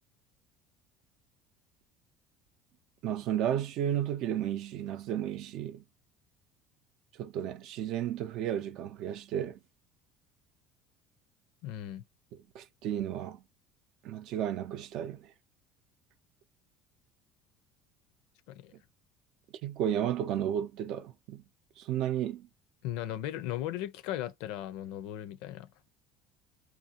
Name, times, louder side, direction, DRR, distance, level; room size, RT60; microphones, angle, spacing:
voice 1, 3.0-5.8 7.2-9.6 12.3-13.4 14.0-15.3 18.7-18.8 19.6-21.4 21.8-22.5, right 10 dB, 65° right, 0.4 m, -33 dB
voice 2, 11.6-12.0 18.5-18.7 22.8-25.7, left 12 dB, 80° left, 0.5 m, -37 dB
2.6 x 2.1 x 2.8 m
supercardioid pair, 110°, 0 cm